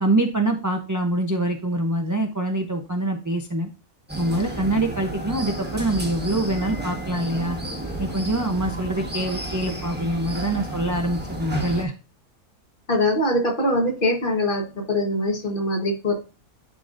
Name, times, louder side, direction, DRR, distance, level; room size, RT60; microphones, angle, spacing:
voice 1, 0.0-3.7 4.2-7.6 8.0-11.9, right 1 dB, 30° right, 3 dB, 0.3 m, -25 dB
sound 1, 4.1-11.8, right 1 dB, 10° right, 1.1 m, -32 dB
voice 2, 12.9-16.1, left 1 dB, 40° left, 2 dB, 1.4 m, -23 dB
10.0 x 3.9 x 2.5 m, 0.33 s
omnidirectional pair, 1.4 m